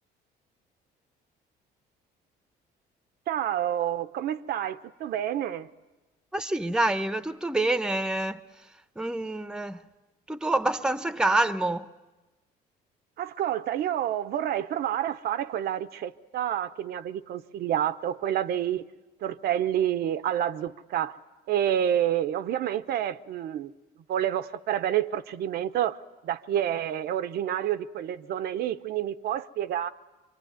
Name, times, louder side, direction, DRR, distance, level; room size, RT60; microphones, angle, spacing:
voice 1, 3.3-5.7 13.2-18.8 19.2-21.1 21.5-23.7 24.1-26.0 26.2-29.9, right 11 dB, 70° right, 0.8 m, -28 dB
voice 2, 6.3-8.4 9.0-9.8 10.3-11.9, right 2 dB, 5° right, 0.9 m, -26 dB
25.0 x 23.5 x 9.4 m
cardioid pair, 110°, 17 cm